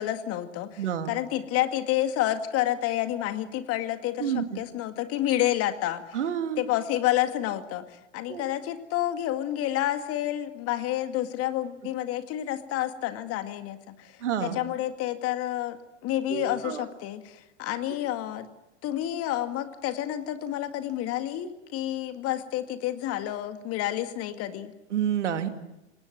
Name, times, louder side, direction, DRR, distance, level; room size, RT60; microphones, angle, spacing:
voice 1, 0.0-6.2 6.6-15.8 16.0-18.5 18.8-24.7, left 13 dB, 40° left, 9 dB, 2.0 m, -29 dB
voice 2, 0.8-1.1 4.2-4.6 6.1-6.6 8.3-8.4 14.2-14.6 16.3-16.8 24.9-25.5, right 9 dB, 70° right, 8 dB, 2.3 m, -29 dB
27.0 x 19.0 x 9.3 m, 0.98 s
figure-of-eight pair, 90°, 36 cm